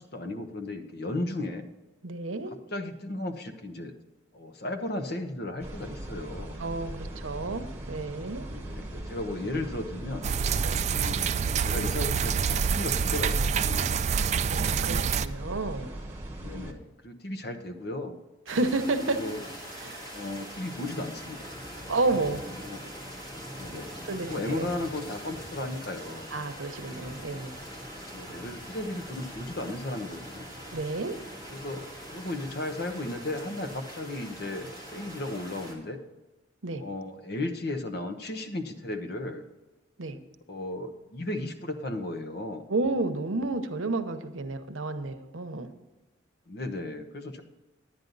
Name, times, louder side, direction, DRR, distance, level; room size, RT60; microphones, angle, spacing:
voice 1, 0.0-1.7 2.5-3.9 4.3-6.5 8.5-10.3 10.9-11.4 11.6-13.9 16.4-18.2 19.2-19.4 20.1-21.5 21.8-22.0 22.6-22.8 23.6-23.9 24.2-26.3 28.1-30.5 31.5-36.0 36.7-39.4 40.5-42.7 46.5-47.4, left 2 dB, 50° left, 6 dB, 1.0 m, -35 dB
voice 2, 2.0-2.5 6.6-8.5 10.6-10.8 14.1-15.9 18.5-19.2 19.8-20.1 21.9-22.4 24.1-24.7 26.3-27.6 30.7-31.2 36.6-36.8 40.0-40.2 42.7-45.7, right 2 dB, 80° right, 8 dB, 0.9 m, -31 dB
sound 1, 5.6-16.7, right 1 dB, 10° right, 1.2 m, -39 dB
sound 2, 10.2-15.3, right 6 dB, 35° right, 0.3 m, -27 dB
sound 3, 18.5-35.7, equal, 25° left, 2.8 m, -42 dB
10.5 x 9.6 x 4.0 m, 1.2 s
head